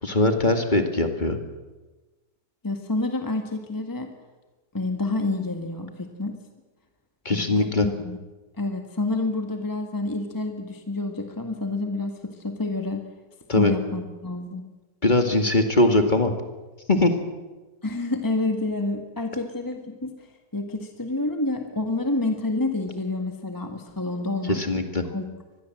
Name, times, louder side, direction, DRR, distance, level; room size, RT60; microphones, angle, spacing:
voice 1, 0.0-1.4 7.2-7.9 13.5-13.7 15.0-16.3 16.9-17.1 24.5-25.0, left 2 dB, 25° left, 6 dB, 2.2 m, -21 dB
voice 2, 2.6-4.1 4.7-6.4 7.3-7.5 7.8-8.2 8.6-13.0 13.6-14.6 17.8-20.1 20.5-24.6 25.1-25.2, left 2 dB, 10° left, 4 dB, 1.7 m, -28 dB
25.0 x 20.5 x 7.8 m, 1.2 s
omnidirectional pair, 1.8 m